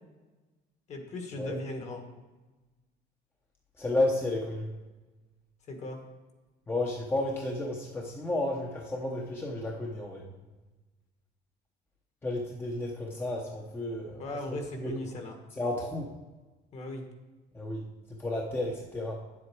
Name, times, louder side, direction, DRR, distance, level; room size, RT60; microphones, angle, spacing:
voice 1, 0.9-2.0 5.7-6.0 14.2-15.4 16.7-17.0, left 1 dB, 40° left, 4 dB, 1.5 m, -38 dB
voice 2, 3.8-4.7 6.7-10.2 12.2-14.2 14.8-14.9 15.6-16.1 17.5-17.8 18.1-19.2, left 2 dB, 10° left, -1 dB, 0.9 m, -32 dB
9.4 x 7.8 x 4.5 m, 1.2 s
cardioid pair, 175°, 18 cm